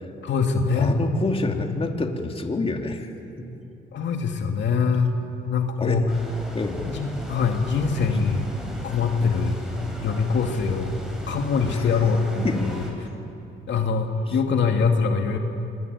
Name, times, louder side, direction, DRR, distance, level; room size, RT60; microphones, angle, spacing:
voice 1, 0.2-0.9 1.3-1.8 3.9-5.1 5.4-6.1 6.9-8.5 8.8-9.6 10.0-11.0 11.3-13.1 13.7-15.4, left 5 dB, 65° left, 4 dB, 2.3 m, -23 dB
voice 2, 0.8-3.1 3.4-3.5 5.8-6.1 6.5-6.8 12.4-12.6, left 2 dB, 30° left, 3 dB, 2.7 m, -27 dB
sound 1, 6.1-12.9, equal, 5° right, 7.8 m, -36 dB
25.0 x 21.5 x 9.6 m, 2.7 s
cardioid pair, 90°, 20 cm